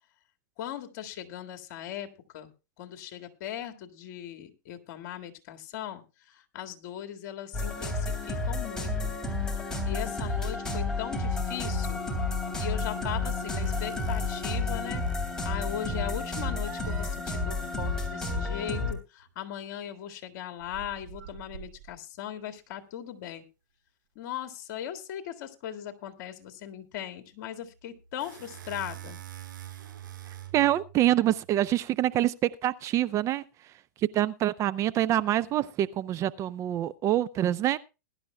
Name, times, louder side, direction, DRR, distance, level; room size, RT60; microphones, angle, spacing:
voice 1, 0.6-2.5 2.8-9.1 9.5-12.1 12.6-15.0 15.4-23.4 24.2-29.2, left 10 dB, 55° left, 1.9 m, -39 dB
sound 1, 7.5-18.9, left 2 dB, 5° left, 3.1 m, -31 dB
sound 2, 13.6-15.3 16.5-17.2 19.2-19.3 20.6-22.2 27.7-31.8, right 10 dB, 80° right, 4.1 m, -46 dB
voice 2, 30.5-37.8, right 13 dB, 30° right, 0.5 m, -26 dB
21.0 x 11.5 x 2.2 m
hypercardioid pair, 130°, 11 cm